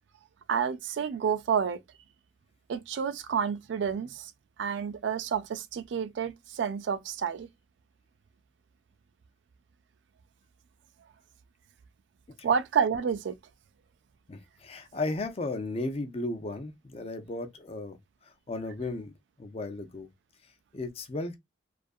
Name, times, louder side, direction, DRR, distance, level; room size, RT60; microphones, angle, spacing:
voice 1, 0.5-1.8 2.7-4.3 4.6-7.5 12.4-13.4, right 7 dB, 65° right, 0.3 m, -29 dB
voice 2, 14.3-18.0 18.2-19.1 19.4-20.1 20.7-21.4, left 2 dB, 30° left, 0.4 m, -35 dB
2.6 x 2.4 x 2.3 m
head